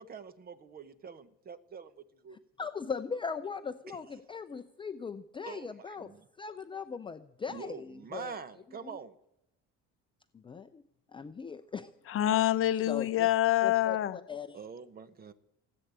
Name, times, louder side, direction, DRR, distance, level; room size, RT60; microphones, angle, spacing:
voice 1, 0.0-1.9 2.2-2.4 3.9-4.0 5.4-6.2 7.5-9.1 14.5-15.3, right 6 dB, 30° right, 15 dB, 1.0 m, -45 dB
voice 2, 2.6-6.1 6.4-8.4 8.8-9.0 10.3-10.8 11.1-11.9 12.9-13.3 13.6-14.6, left 6 dB, 15° left, 8 dB, 0.5 m, -39 dB
voice 3, 12.1-14.2, left 13 dB, 45° left, 13 dB, 0.8 m, -26 dB
17.0 x 8.7 x 8.1 m, 0.85 s
cardioid pair, 145°, 30 cm